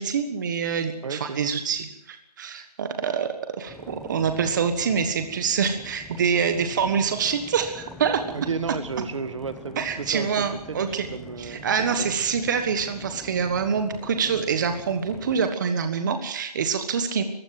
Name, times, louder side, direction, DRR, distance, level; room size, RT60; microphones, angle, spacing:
voice 1, 0.0-8.2 9.8-11.1 11.4-17.2, right 6 dB, 30° right, 8 dB, 1.4 m, -26 dB
voice 2, 1.0-1.4 8.3-12.2 13.7-13.8, right 5 dB, 50° right, 12 dB, 1.6 m, -33 dB
sound 1, 3.7-15.5, left 2 dB, ahead, 0.7 m, -45 dB
24.0 x 15.0 x 7.7 m, 0.81 s
hypercardioid pair, 170°, 21 cm